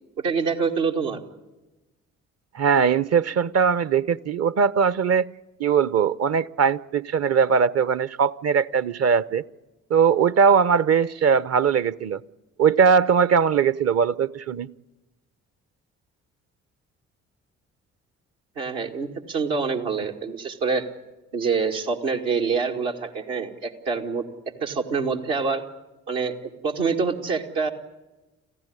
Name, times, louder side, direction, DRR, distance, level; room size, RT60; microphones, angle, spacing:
voice 1, 0.2-1.2 18.6-20.9 21.3-24.3 24.6-25.6 26.1-27.7, right 5 dB, 75° right, 1 dB, 2.1 m, -26 dB
voice 2, 2.5-5.3 5.6-9.4 9.9-12.2 12.6-14.7, right 6 dB, 45° right, 19 dB, 0.8 m, -20 dB
27.5 x 15.0 x 9.9 m, 1.1 s
hypercardioid pair, 40°, 35 cm